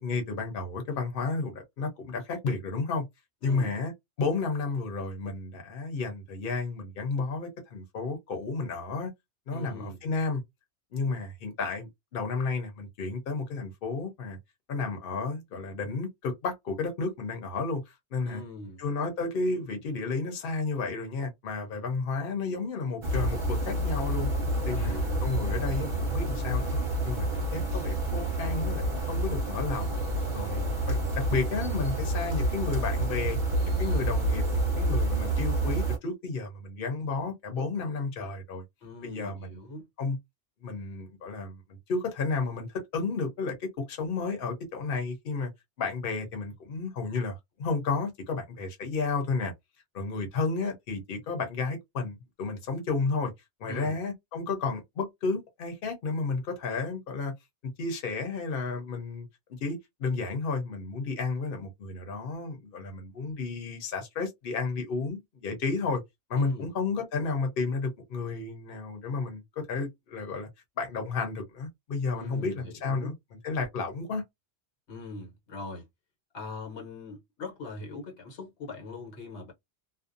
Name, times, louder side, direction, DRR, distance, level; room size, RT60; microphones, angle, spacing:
voice 1, 0.0-3.0 3.4-3.9 4.2-9.1 9.5-10.4 10.9-14.4 14.7-18.4 18.8-24.3 24.7-26.8 27.0-30.0 30.3-33.4 33.6-38.6 39.0-39.6 40.0-40.2 40.6-41.6 41.9-45.5 45.8-49.5 49.9-53.3 53.6-57.3 57.8-59.3 59.6-66.0 66.3-69.4 69.7-70.5 70.8-73.1 73.4-74.2, left 4 dB, 60° left, 0.9 m, -32 dB
voice 2, 3.4-3.8 9.5-10.0 18.2-18.8 24.7-25.3 38.8-39.9 53.7-54.0 66.4-66.7 72.1-73.1 74.9-75.8 76.3-79.5, left 2 dB, 85° left, 1.3 m, -41 dB
sound 1, 23.0-36.0, right 1 dB, 30° right, 0.8 m, -28 dB
2.5 x 2.1 x 2.5 m
omnidirectional pair, 1.1 m